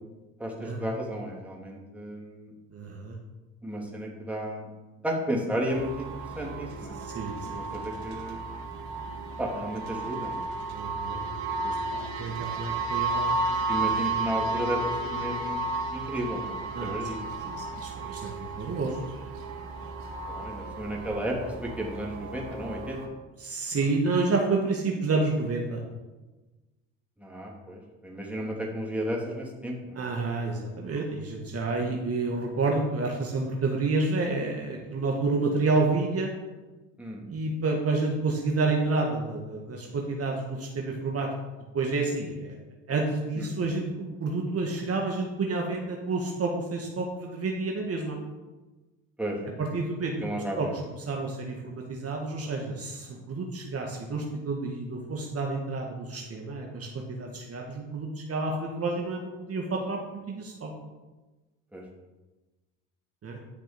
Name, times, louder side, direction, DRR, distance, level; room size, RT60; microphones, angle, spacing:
voice 1, 0.4-2.5 3.6-4.7 5.0-7.0 7.5-8.4 9.4-10.5 13.7-14.8 15.0-16.6 16.8-17.2 20.3-23.0 27.2-30.0 37.0-37.2 43.4-43.5 49.2-49.4 50.2-50.7 53.1-53.2 61.7-61.8, equal, 5° right, -2 dB, 3.0 m, -33 dB
voice 2, 2.7-3.2 7.0-7.6 10.7-11.2 11.6-13.7 16.7-16.9 17.2-19.3 23.4-25.8 30.0-36.3 37.3-41.3 41.7-42.6 42.9-48.2 49.6-50.1 50.6-50.7 51.0-60.7 63.2-63.4, right 3 dB, 40° right, 0 dB, 1.9 m, -29 dB
sound 1, 5.7-23.1, right 3 dB, 75° right, 1.9 m, -33 dB
11.0 x 6.1 x 5.3 m, 1.2 s
hypercardioid pair, 70°, 38 cm